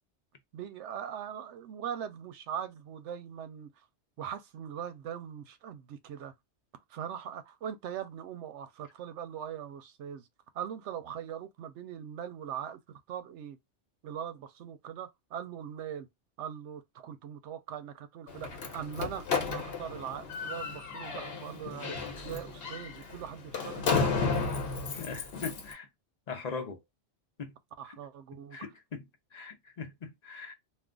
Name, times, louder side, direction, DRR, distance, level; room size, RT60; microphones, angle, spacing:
voice 1, 0.5-3.7 4.2-6.3 6.9-10.3 10.5-13.6 14.0-16.1 16.4-24.3 27.8-28.7, right 9 dB, 85° right, 0.9 m, -41 dB
Slam, 18.3-25.7, left 4 dB, 60° left, 1.0 m, -33 dB
voice 2, 25.0-25.9 26.3-26.8 27.4-27.5 28.5-29.0 29.3-30.5, left 5 dB, 45° left, 0.7 m, -40 dB
2.5 x 2.4 x 3.6 m
omnidirectional pair, 1.2 m